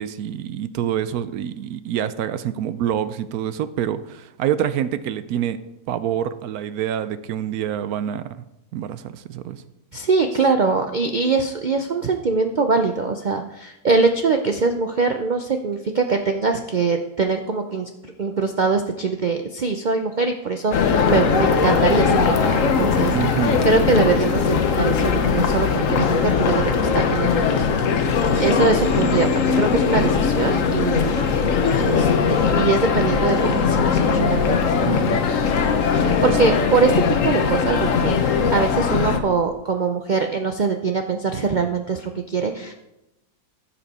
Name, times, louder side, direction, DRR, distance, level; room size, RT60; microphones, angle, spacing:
voice 1, 0.0-5.6 5.9-8.4 8.7-9.6 23.1-23.7 28.3-28.7 34.9-35.3 36.3-36.4, right 10 dB, 75° right, 13 dB, 1.0 m, -26 dB
voice 2, 9.9-17.9 18.2-23.2 23.6-27.8 28.4-31.1 31.4-31.5 31.8-34.9 36.0-42.7, right 4 dB, 90° right, 5 dB, 0.4 m, -22 dB
sound 1, 20.7-39.2, left 6 dB, 60° left, 1.2 m, -20 dB
15.0 x 5.8 x 4.1 m, 0.91 s
omnidirectional pair, 1.7 m